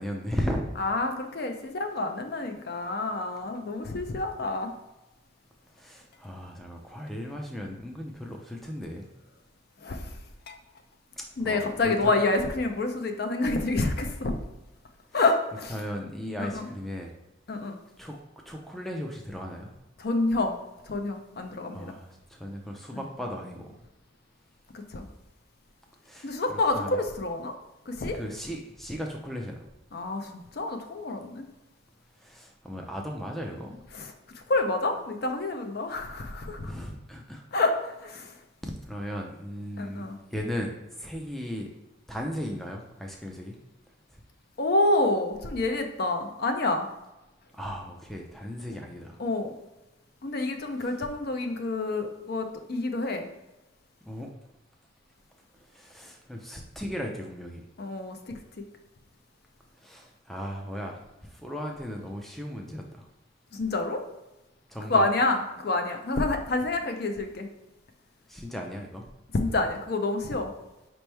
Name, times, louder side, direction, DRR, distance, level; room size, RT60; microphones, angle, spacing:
voice 1, 0.0-0.7 5.7-9.1 11.2-12.1 15.1-15.2 15.7-17.1 18.0-18.2 18.5-19.7 21.7-23.7 26.0-26.3 26.7-27.0 28.1-29.7 32.2-33.8 36.6-37.4 38.6-41.7 42.1-43.6 44.1-44.2 47.5-49.2 50.8-50.9 54.1-54.3 55.7-57.6 59.8-63.1 64.7-65.1 68.3-69.0, equal, ahead, 1 dB, 0.4 m, -36 dB
voice 2, 0.8-4.7 9.8-10.1 10.5-10.6 11.4-14.4 15.1-15.7 16.4-16.6 17.5-17.8 20.0-20.5 20.9-22.0 22.9-23.0 24.9-25.0 26.2-27.5 27.9-28.2 29.9-31.4 33.9-34.1 34.5-36.7 37.5-38.3 39.8-40.2 44.6-46.9 49.2-49.5 50.2-53.3 57.8-58.4 63.5-64.0 64.9-67.5 69.3-70.5, left 2 dB, 55° left, 6 dB, 0.5 m, -28 dB
5.2 x 3.0 x 3.3 m, 0.99 s
head